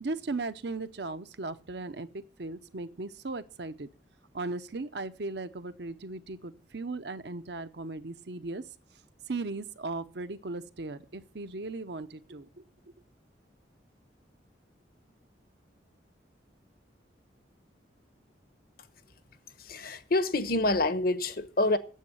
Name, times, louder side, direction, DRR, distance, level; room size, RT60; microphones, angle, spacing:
voice 1, 0.0-3.9 4.3-8.6 9.3-12.5, right 3 dB, 65° right, 0.8 m, -37 dB
voice 2, 19.6-21.8, left 2 dB, 55° left, 1.0 m, -27 dB
9.4 x 7.8 x 8.7 m
head